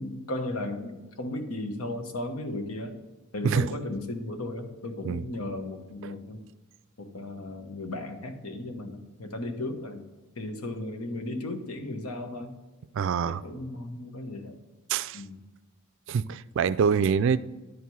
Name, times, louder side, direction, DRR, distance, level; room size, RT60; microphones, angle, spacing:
voice 1, 0.0-3.0 3.3-6.4 7.0-10.0 10.4-12.5 13.3-14.6 15.1-15.4, left 1 dB, 90° left, 1.1 m, -35 dB
voice 2, 12.9-13.4 14.9-15.2 16.1-17.4, right 6 dB, 60° right, 0.3 m, -25 dB
10.0 x 4.7 x 5.5 m
head